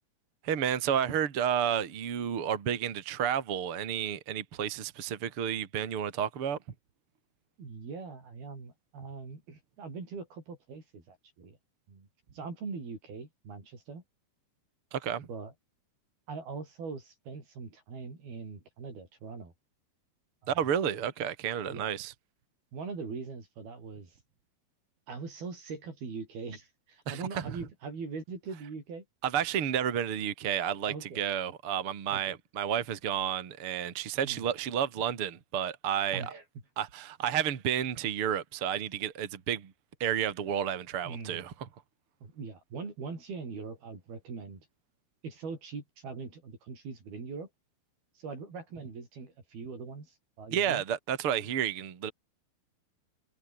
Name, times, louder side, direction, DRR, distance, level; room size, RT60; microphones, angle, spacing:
voice 1, 0.4-6.6 14.9-15.3 20.5-22.1 27.1-27.6 29.2-36.3 36.8-39.7 40.0-41.7 50.5-52.1, right 9 dB, 40° right, 2.7 m, -31 dB
voice 2, 7.6-11.6 11.9-12.1 12.3-14.0 15.3-15.5 16.3-19.5 20.4-20.5 21.7-21.9 22.7-24.1 25.1-29.1 30.9-31.2 32.1-32.4 34.2-34.5 36.1-36.4 41.1-41.5 42.2-44.6 45.2-47.5 48.2-50.8, right 4 dB, 80° right, 8.6 m, -42 dB
omnidirectional pair, 4.3 m